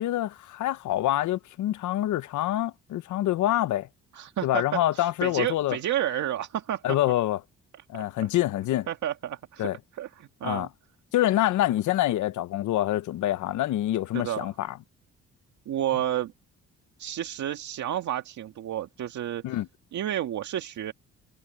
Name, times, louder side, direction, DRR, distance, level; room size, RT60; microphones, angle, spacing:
voice 1, 0.0-3.9 4.4-5.8 6.8-7.4 7.9-8.9 9.6-9.8 10.4-10.7 11.1-14.8 19.4-19.7, left 14 dB, 75° left, 0.9 m, -26 dB
voice 2, 4.1-6.8 7.9-8.3 8.9-10.7 14.1-14.5 15.7-16.3 17.0-19.6 19.9-20.9, right 11 dB, 70° right, 1.9 m, -31 dB
cardioid pair, 90°, 30 cm